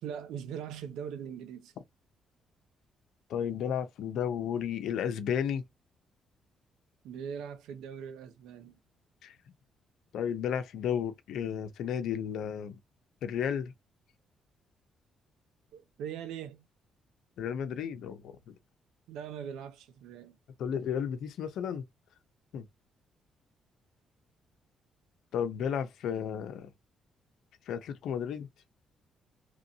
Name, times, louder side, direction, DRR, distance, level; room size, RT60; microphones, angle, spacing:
voice 1, 0.0-1.7 7.0-8.8 15.7-16.7 19.1-20.4, right 8 dB, 90° right, 0.6 m, -41 dB
voice 2, 3.3-5.6 9.2-9.3 10.1-12.8 13.2-13.7 17.4-18.5 20.6-21.8 22.5-22.7 25.3-26.7 27.7-28.5, left 8 dB, 80° left, 0.5 m, -33 dB
3.0 x 2.6 x 2.7 m
cardioid pair, 90°, 0 cm